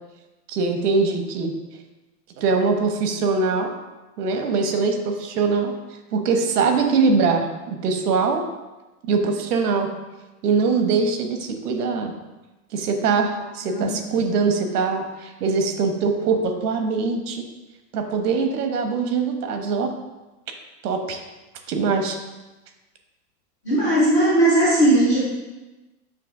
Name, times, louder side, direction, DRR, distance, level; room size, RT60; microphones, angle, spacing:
voice 1, 0.5-1.5 2.4-3.7 4.2-5.7 6.1-8.4 9.0-9.9 10.4-12.1 12.7-17.4 17.9-19.9 20.8-21.2 21.7-22.2, right 4 dB, 85° right, 5 dB, 1.1 m, -22 dB
voice 2, 13.6-14.2 23.6-25.2, right 1 dB, 15° left, -8 dB, 0.4 m, -18 dB
6.6 x 2.8 x 5.3 m, 1.1 s
supercardioid pair, 180°, 45 cm